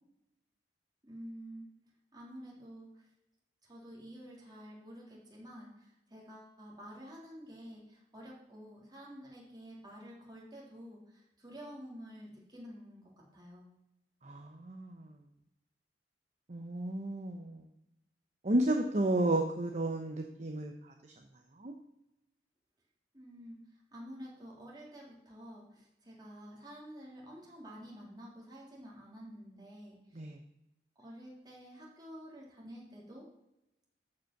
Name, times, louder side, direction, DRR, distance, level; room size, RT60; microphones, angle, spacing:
voice 1, 1.0-1.6 2.1-3.1 3.6-13.7 23.1-23.6 23.9-30.2 31.0-33.2, equal, 25° right, -4 dB, 3.3 m, -50 dB
voice 2, 14.2-15.1 16.5-17.6 18.4-20.9 21.6-21.7 30.1-30.4, right 1 dB, 40° right, 4 dB, 0.9 m, -32 dB
13.5 x 5.3 x 6.0 m, 0.90 s
head